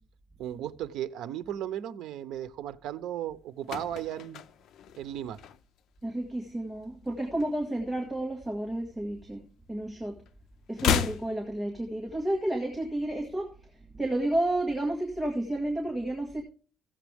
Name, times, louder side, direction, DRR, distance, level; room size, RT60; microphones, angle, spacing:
voice 1, 0.4-4.4 5.0-5.4, right 11 dB, 80° right, 0.7 m, -35 dB
sound 1, 3.3-6.0 6.2-6.5 6.8-8.3 8.6-9.9 10.2-12.3 12.5-12.6, left 8 dB, 65° left, 0.6 m, -34 dB
voice 2, 6.0-10.2 10.7-13.5 13.9-16.4, right 1 dB, 5° right, 1.7 m, -31 dB
15.5 x 7.3 x 3.4 m
cardioid pair, 145°, 0 cm